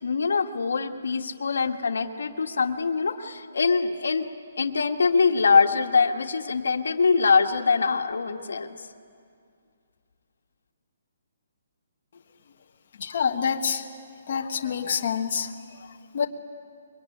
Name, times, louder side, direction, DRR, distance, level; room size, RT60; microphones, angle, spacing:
voice 1, 0.0-4.2 4.6-8.7, left 5 dB, 85° left, 6 dB, 1.6 m, -23 dB
voice 2, 13.0-13.9 14.3-16.3, left 6 dB, 40° left, 2 dB, 1.3 m, -27 dB
25.0 x 23.0 x 9.9 m, 2.3 s
hypercardioid pair, 175°, 0 cm